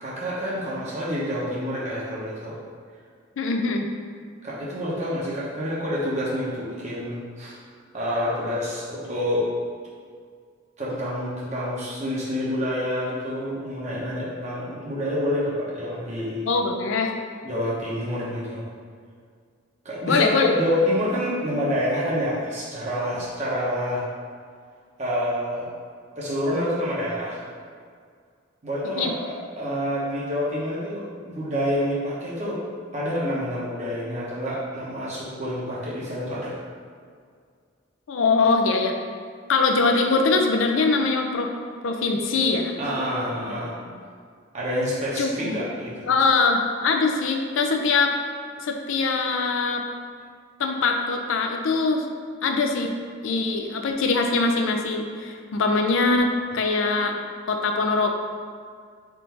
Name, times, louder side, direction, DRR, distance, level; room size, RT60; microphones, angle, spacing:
voice 1, 0.0-2.6 4.4-7.6 7.9-9.5 10.8-16.5 17.4-18.7 19.8-24.0 25.0-25.7 26.2-27.4 28.6-32.6 32.9-36.6 42.8-43.8 44.5-46.1, equal, 35° right, -7 dB, 0.8 m, -28 dB
voice 2, 3.4-3.9 16.4-17.1 20.1-20.5 28.8-29.1 38.1-39.0 39.5-41.5 41.8-42.7 45.2-45.7 46.1-48.1 48.6-49.8 50.6-52.1 52.4-53.0 53.2-57.2 57.5-58.2, left 3 dB, 80° left, 3 dB, 0.4 m, -22 dB
3.6 x 2.6 x 4.4 m, 2.1 s
head